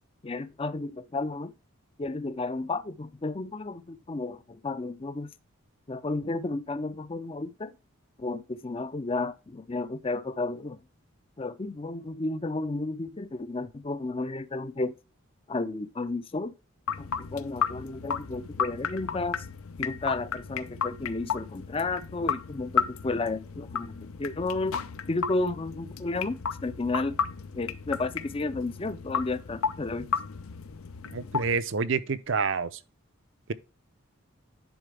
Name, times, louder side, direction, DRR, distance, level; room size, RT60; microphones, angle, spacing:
voice 1, 0.2-1.5 2.0-5.3 5.9-7.7 8.2-10.8 11.4-14.9 15.5-16.5 17.0-19.5 19.8-24.8 25.1-27.2 27.5-30.1, left 3 dB, 25° left, 0.5 m, -32 dB
sound 1, 16.9-31.6, left 6 dB, 75° left, 0.6 m, -34 dB
voice 2, 31.1-32.7, right 5 dB, 60° right, 0.6 m, -28 dB
10.0 x 4.2 x 3.3 m
head